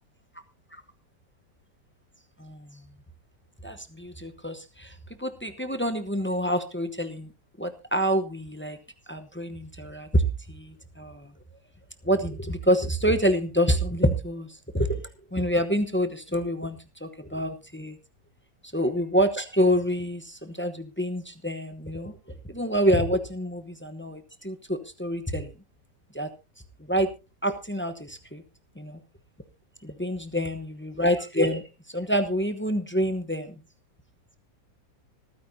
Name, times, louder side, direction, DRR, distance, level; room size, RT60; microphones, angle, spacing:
voice 1, 3.6-4.9 5.2-7.3 7.6-8.8 9.1-10.2 10.5-11.3 12.0-14.5 14.7-15.0 15.3-18.0 18.7-22.1 22.5-25.5 26.1-26.3 26.9-27.1 27.4-28.4 28.8-29.0 29.8-31.6 31.9-33.5, equal, 10° left, 8 dB, 0.5 m, -27 dB
25.0 x 9.4 x 2.7 m, 0.28 s
omnidirectional pair, 1.8 m